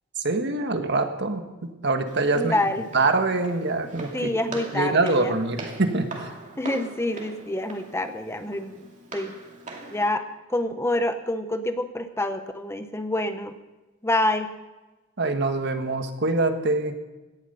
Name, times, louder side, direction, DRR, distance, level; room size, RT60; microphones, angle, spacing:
voice 1, 0.2-2.6 2.9-4.3 4.7-6.3 15.2-16.9, right 3 dB, 55° right, 6 dB, 1.5 m, -24 dB
Walk footsteps, 2.1-10.1, right 2 dB, 40° right, 2.4 m, -42 dB
voice 2, 2.3-2.9 4.1-5.3 6.6-9.3 9.9-10.2 10.5-13.6 14.0-14.5, left 1 dB, 15° left, 9 dB, 0.8 m, -27 dB
17.5 x 11.5 x 5.5 m, 1.1 s
head